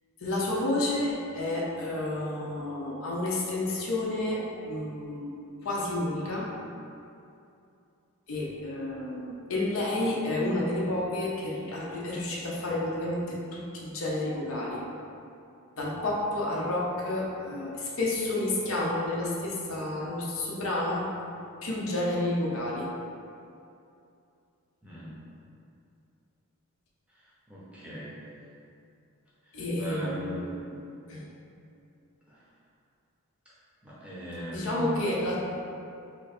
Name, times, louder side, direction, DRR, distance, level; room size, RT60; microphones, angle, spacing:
voice 1, 0.2-5.3 5.6-6.5 8.3-14.8 15.7-21.1 21.6-22.9 29.5-30.6 31.1-31.2 34.5-35.4, left 1 dB, 65° left, -4 dB, 0.6 m, -30 dB
voice 2, 24.8-25.2 27.1-28.2 29.8-30.6 32.3-32.4 33.8-35.1, equal, 5° right, -9 dB, 0.6 m, -39 dB
3.0 x 2.6 x 4.1 m, 2.6 s
head